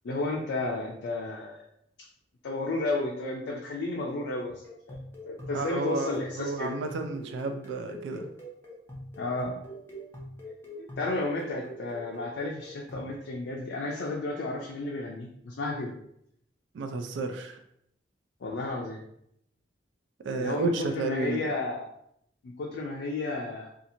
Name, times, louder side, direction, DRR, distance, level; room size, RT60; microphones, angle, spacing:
voice 1, 0.0-1.6 2.0-2.1 2.4-4.5 4.9-5.0 5.2-6.8 9.2-9.6 10.8-15.9 18.4-19.0 20.4-21.9 22.4-23.7, left 2 dB, 80° left, -1 dB, 0.4 m, -32 dB
sound 1, 4.6-13.1, equal, 15° left, 0.5 m, -44 dB
voice 2, 5.5-6.1 6.4-8.3 16.7-17.6 20.2-21.4, right 3 dB, 85° right, 6 dB, 0.3 m, -31 dB
2.8 x 2.4 x 2.6 m, 0.73 s
head